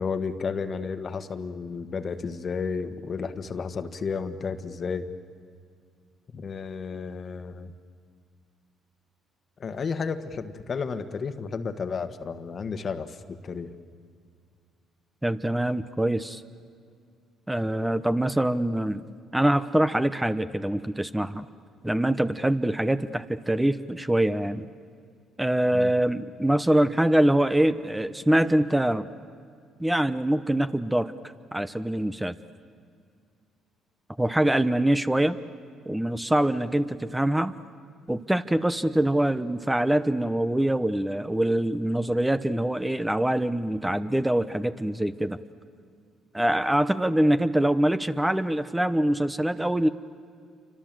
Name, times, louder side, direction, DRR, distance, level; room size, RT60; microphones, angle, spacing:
voice 1, 0.0-5.1 6.3-7.7 9.6-13.7 25.7-25.9, left 5 dB, 45° left, 9 dB, 1.6 m, -32 dB
voice 2, 15.2-16.4 17.5-19.0 19.3-21.5 21.8-24.7 25.4-29.1 29.8-31.1 31.5-32.4 34.2-35.4 35.9-37.5 38.1-45.4 46.3-49.9, right 1 dB, 10° right, 11 dB, 1.0 m, -24 dB
28.5 x 25.5 x 7.7 m, 2.2 s
supercardioid pair, 60°, 0 cm